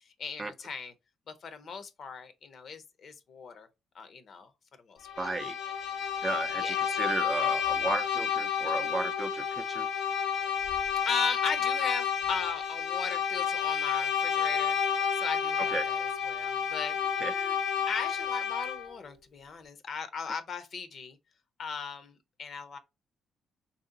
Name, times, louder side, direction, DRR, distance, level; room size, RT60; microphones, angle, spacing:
voice 1, 0.2-0.9 1.3-3.7 3.9-4.5 4.8-5.1 6.5-6.8 11.1-14.8 15.1-17.6 17.9-21.2 21.6-22.1 22.4-22.8, left 5 dB, 55° left, 0.6 m, -37 dB
Bowed string instrument, 5.0-18.9, left 8 dB, 90° left, 1.1 m, -30 dB
voice 2, 5.2-5.6 6.2-9.9 15.7-15.9 17.2-17.3, right 3 dB, 25° right, 0.4 m, -34 dB
3.1 x 2.7 x 3.8 m
cardioid pair, 90°, 0 cm